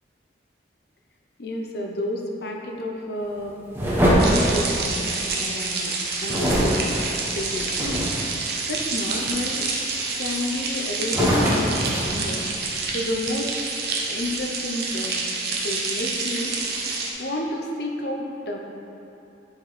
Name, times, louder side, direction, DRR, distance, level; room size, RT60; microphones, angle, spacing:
voice 1, 1.4-3.7 4.0-7.0 7.3-8.1 8.7-9.7 10.2-12.5 12.9-13.6 14.1-15.3 15.6-16.6 17.2-18.6, left 1 dB, 60° left, 1 dB, 0.8 m, -31 dB
sound 1, 3.7-5.4 6.3-8.3 8.9-9.3 9.8-10.6 11.0-12.9, equal, 15° right, 1.2 m, -23 dB
sound 2, 4.2-17.1, right 4 dB, 60° right, 0.9 m, -28 dB
11.0 x 4.6 x 3.3 m, 2.9 s
head